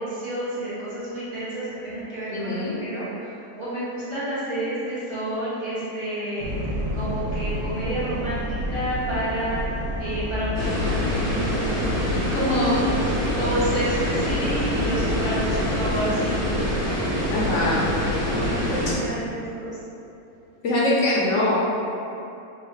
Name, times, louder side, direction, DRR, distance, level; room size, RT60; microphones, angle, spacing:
voice 1, 0.0-9.6 10.0-11.6 12.1-12.8 13.3-16.3 17.5-17.6 18.3-19.7, right 1 dB, 20° right, -13 dB, 0.9 m, -29 dB
voice 2, 2.3-2.7 12.5-12.9 17.3-17.9 18.9-19.0 20.6-21.6, left 1 dB, 65° left, -6 dB, 0.8 m, -23 dB
sound 1, 6.4-18.9, left 1 dB, 70° right, 1.0 m, -30 dB
sound 2, 10.5-18.9, equal, 25° left, 0.4 m, -26 dB
3.9 x 2.3 x 3.3 m, 2.7 s
omnidirectional pair, 1.6 m